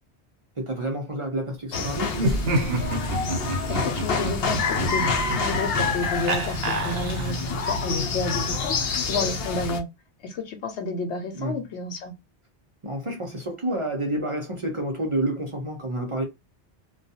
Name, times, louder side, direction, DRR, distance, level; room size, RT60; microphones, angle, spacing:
voice 1, 0.6-2.5 11.3-11.6 12.8-16.2, right 1 dB, 35° right, 0.6 m, -29 dB
sound 1, 1.7-9.8, left 4 dB, 65° left, 0.8 m, -27 dB
Laughter, 2.1-7.5, right 1 dB, 65° right, 0.9 m, -28 dB
voice 2, 3.5-9.9 10.2-12.1, left 3 dB, 85° left, 1.0 m, -31 dB
2.3 x 2.2 x 2.7 m
omnidirectional pair, 1.1 m